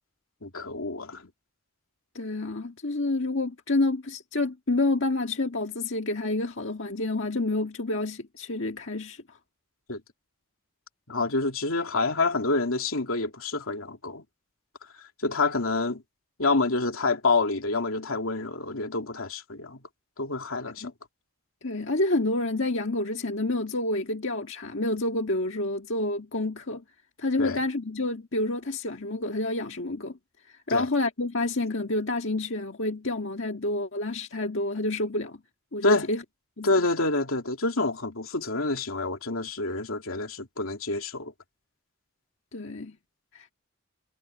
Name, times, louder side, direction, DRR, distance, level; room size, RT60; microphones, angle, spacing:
voice 1, 0.4-1.2 9.9-10.0 11.1-14.2 15.2-16.0 16.4-19.8 20.2-20.9 27.4-27.6 30.7-30.9 35.8-36.1 36.6-41.3, left 3 dB, 85° left, 2.9 m, -27 dB
voice 2, 2.1-9.4 20.8-20.9 21.6-26.8 27.2-30.2 30.5-35.4 35.7-36.2 36.6-36.7 42.5-42.9 43.3-43.5, left 2 dB, 60° left, 1.8 m, -28 dB
head